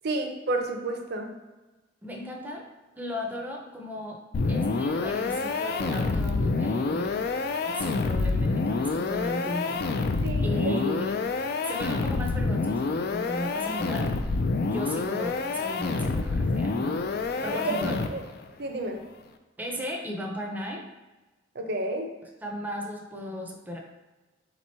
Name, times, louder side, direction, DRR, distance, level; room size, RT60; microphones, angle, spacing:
voice 1, 0.0-1.3 10.2-10.7 17.5-18.2 18.6-19.1 21.5-22.1, right 2 dB, 60° right, 4 dB, 0.6 m, -31 dB
voice 2, 2.0-2.7 3.0-7.2 7.6-9.9 10.4-11.3 11.7-14.1 14.6-17.0 17.3-18.0 19.6-20.8 22.4-23.8, left 1 dB, 10° right, 0 dB, 0.5 m, -35 dB
sound 1, 4.3-18.4, left 3 dB, 55° left, 0.3 m, -27 dB
3.4 x 3.0 x 4.3 m, 1.1 s
head